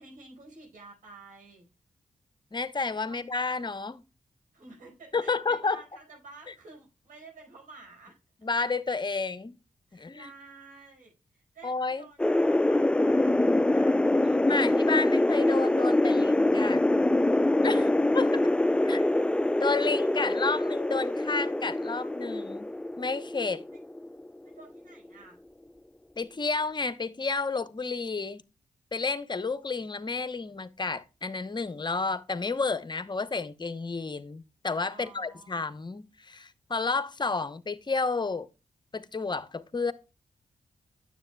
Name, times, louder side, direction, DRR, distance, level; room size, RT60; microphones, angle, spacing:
voice 1, 0.0-1.7 3.0-3.2 4.5-8.2 9.9-14.0 17.7-17.9 18.9-19.1 20.1-20.3 23.7-23.8 24.4-25.4 34.9-35.7, right 3 dB, 80° right, 4.7 m, -51 dB
voice 2, 2.5-4.0 5.1-5.8 8.4-9.6 9.9-10.3 11.6-12.0 14.5-16.8 17.6-17.8 18.1-18.5 18.8-19.0 19.6-23.6 26.2-28.4 28.9-38.5 38.9-39.9, left 4 dB, 35° left, 0.8 m, -31 dB
sound 1, 12.2-24.6, left 1 dB, 10° left, 0.3 m, -25 dB
9.5 x 7.6 x 2.3 m
supercardioid pair, 45°, 14 cm